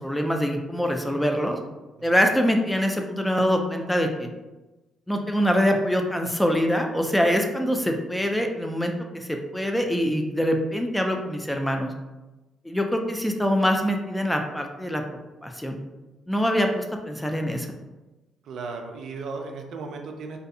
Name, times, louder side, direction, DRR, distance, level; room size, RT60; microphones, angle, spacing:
voice 1, 0.0-1.6 2.0-4.3 5.1-11.9 12.6-15.0 15.4-15.8 16.3-17.7, equal, 5° left, 3 dB, 0.3 m, -24 dB
voice 2, 18.4-20.4, right 4 dB, 70° right, 3 dB, 0.3 m, -35 dB
2.5 x 2.3 x 2.6 m, 1.1 s
cardioid pair, 90°, 0 cm